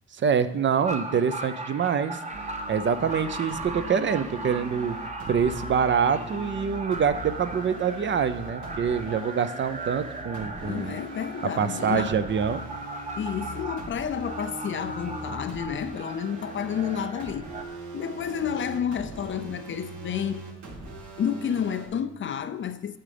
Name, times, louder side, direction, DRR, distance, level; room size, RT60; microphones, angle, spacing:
voice 1, 0.2-2.2 2.7-5.0 5.3-11.0 11.6-12.6, right 7 dB, 40° right, 0.5 m, -25 dB
sound 1, 0.8-17.6, right 2 dB, 25° right, 0.9 m, -38 dB
sound 2, 2.3-21.9, right 2 dB, 75° right, 1.7 m, -41 dB
voice 2, 10.6-12.2 13.2-17.5 17.9-20.5 21.2-23.0, left 8 dB, 40° left, 0.4 m, -30 dB
8.7 x 7.5 x 3.3 m
cardioid pair, 90°, 30 cm